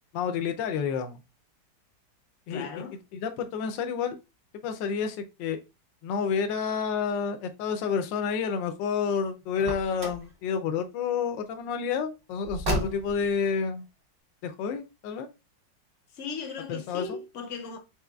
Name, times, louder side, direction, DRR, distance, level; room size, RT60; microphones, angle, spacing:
voice 1, 0.1-1.2 2.5-2.7 3.1-4.2 4.6-5.6 6.0-13.8 14.4-15.3 16.7-17.2, left 6 dB, 90° left, 1.3 m, -29 dB
voice 2, 2.5-3.0 16.1-17.8, left 5 dB, 60° left, 0.8 m, -37 dB
Car, 9.5-10.3 12.4-13.3, right 1 dB, 35° right, 1.1 m, -31 dB
4.7 x 4.2 x 2.2 m
omnidirectional pair, 1.9 m